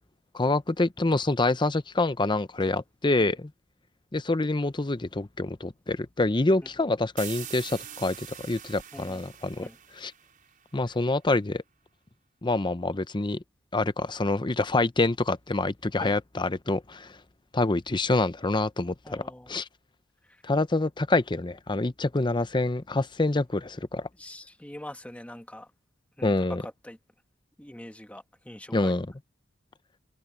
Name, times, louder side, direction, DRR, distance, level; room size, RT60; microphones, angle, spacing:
voice 1, 0.3-3.5 4.1-9.7 9.9-10.1 10.7-11.6 12.4-13.4 13.7-17.1 17.5-19.2 19.5-19.7 20.4-24.1 26.2-26.6 28.7-29.1, left 2 dB, 25° left, 0.7 m, -26 dB
sound 1, 7.2-10.8, right 10 dB, 45° right, 5.3 m, -43 dB
voice 2, 8.9-9.2 9.6-9.8 16.0-16.1 19.0-19.5 24.2-25.7 26.2-26.3 26.8-27.0 27.6-28.9, left 1 dB, 5° left, 1.2 m, -43 dB
head